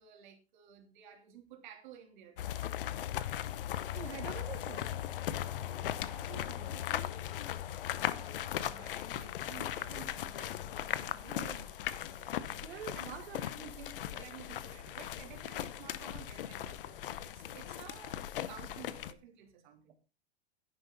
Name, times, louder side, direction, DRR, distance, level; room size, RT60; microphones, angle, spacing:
voice 1, 0.0-2.9 5.6-13.2 13.6-19.9, right 9 dB, 45° right, 3 dB, 3.2 m, -54 dB
sound 1, 2.4-19.1, left 11 dB, 55° left, 0.8 m, -38 dB
voice 2, 3.9-4.9 11.3-11.7 12.4-13.4, right 9 dB, 70° right, 3 dB, 1.9 m, -46 dB
10.5 x 10.0 x 4.0 m, 0.31 s
supercardioid pair, 170°, 33 cm